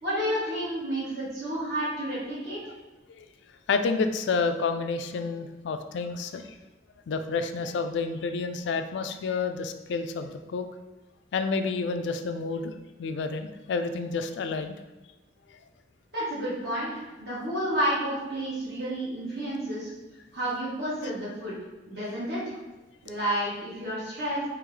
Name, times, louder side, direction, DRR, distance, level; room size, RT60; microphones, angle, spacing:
voice 1, 0.0-2.6 16.1-19.9 20.3-21.6 21.9-22.6 23.0-24.4, right 1 dB, 60° right, -8 dB, 1.5 m, -30 dB
voice 2, 3.7-6.5 7.1-10.7 11.3-14.7, left 4 dB, 75° left, 8 dB, 0.3 m, -29 dB
3.7 x 3.0 x 3.1 m, 1.1 s
head